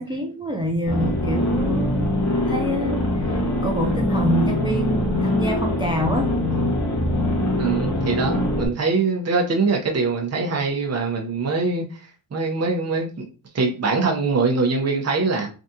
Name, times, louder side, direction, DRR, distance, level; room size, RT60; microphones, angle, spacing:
voice 1, 0.0-2.1 2.5-6.3 8.2-8.3, equal, 10° right, 2 dB, 0.4 m, -26 dB
sound 1, 0.9-8.7, left 1 dB, 35° left, 1.0 m, -23 dB
voice 2, 7.6-12.0 12.3-13.3 13.5-15.5, right 4 dB, 35° right, 1 dB, 0.8 m, -23 dB
3.5 x 2.4 x 2.7 m, 0.36 s
cardioid pair, 70°, 47 cm